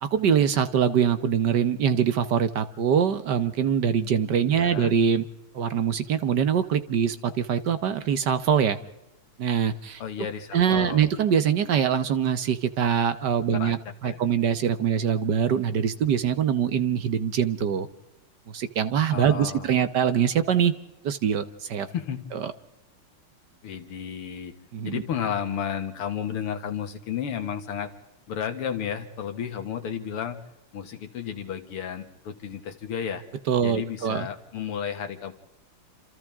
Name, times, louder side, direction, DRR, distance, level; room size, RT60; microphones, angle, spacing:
voice 1, 0.0-5.2 5.5-8.8 9.4-10.0 10.5-13.8 14.0-17.9 18.5-20.7 21.0-21.9 22.3-22.5 24.7-25.0 33.5-34.3, right 8 dB, 60° right, 11 dB, 1.4 m, -23 dB
voice 2, 4.5-5.0 10.0-11.1 13.5-13.8 14.0-14.2 19.1-19.7 21.9-22.2 23.6-24.5 24.8-27.9 28.3-30.4 30.7-33.2 33.6-35.3, left 8 dB, 90° left, 7 dB, 2.6 m, -32 dB
28.0 x 27.0 x 3.6 m, 0.93 s
omnidirectional pair, 2.4 m